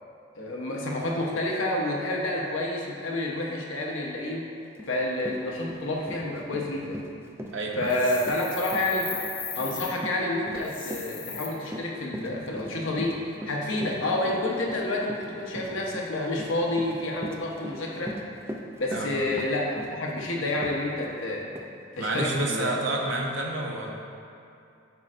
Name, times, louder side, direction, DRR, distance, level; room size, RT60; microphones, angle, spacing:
voice 1, 0.4-4.5 4.9-7.0 7.8-9.1 9.5-13.2 13.5-18.1 18.8-21.5 22.0-22.7, left 1 dB, 75° left, -2 dB, 0.9 m, -29 dB
Run, 4.8-4.9 5.2-21.2 21.5-21.7 22.1-22.3, equal, 10° right, 0.3 m, -40 dB
voice 2, 7.5-8.0 18.9-19.1 22.0-23.9, right 2 dB, 65° right, -1 dB, 0.7 m, -29 dB
sound 1, 7.8-9.9 10.6-11.5, left 6 dB, 40° left, 0.8 m, -37 dB
10.5 x 4.3 x 2.5 m, 2.6 s
head